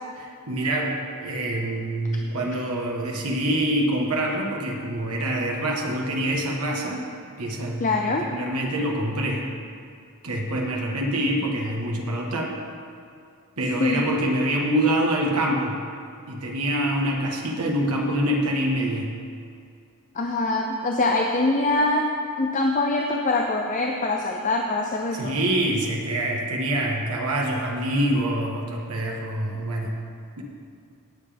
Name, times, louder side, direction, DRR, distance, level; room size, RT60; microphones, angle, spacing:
voice 1, 0.2-7.0 7.4-9.5 10.2-12.5 13.6-15.8 16.3-19.1 25.1-30.0 30.4-30.5, right 1 dB, 85° right, -1 dB, 1.4 m, -25 dB
voice 2, 7.8-8.3 13.8-14.1 20.1-25.4, left 2 dB, 35° left, 2 dB, 0.5 m, -24 dB
18.0 x 7.1 x 3.5 m, 2.4 s
head